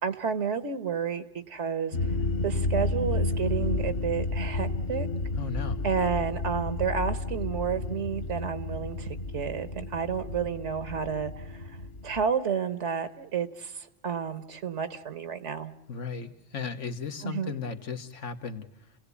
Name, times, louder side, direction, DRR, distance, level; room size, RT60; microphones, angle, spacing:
voice 1, 0.0-2.0 2.4-5.1 5.8-11.7 12.0-15.7 17.2-17.5, right 7 dB, 75° right, 11 dB, 1.4 m, -31 dB
sound 1, 1.9-12.2, left 2 dB, 65° left, 1.5 m, -31 dB
voice 2, 5.3-5.8 15.9-18.9, left 5 dB, 85° left, 6 dB, 1.6 m, -36 dB
29.5 x 17.0 x 8.3 m, 0.84 s
omnidirectional pair, 1.2 m